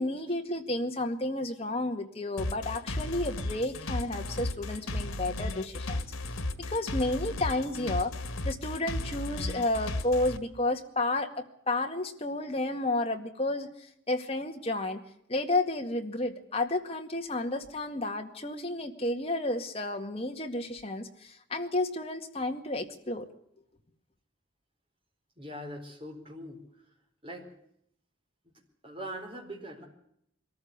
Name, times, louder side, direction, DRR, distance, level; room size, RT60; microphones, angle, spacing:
voice 1, 0.0-6.1 6.7-8.1 8.4-15.0 15.3-23.3, left 2 dB, 30° left, 4 dB, 2.0 m, -31 dB
sound 1, 2.4-10.4, left 2 dB, 90° left, 1.7 m, -34 dB
voice 2, 25.4-26.6 27.2-27.5 28.8-29.9, equal, 25° right, 1 dB, 4.5 m, -41 dB
23.0 x 14.5 x 9.6 m, 0.74 s
head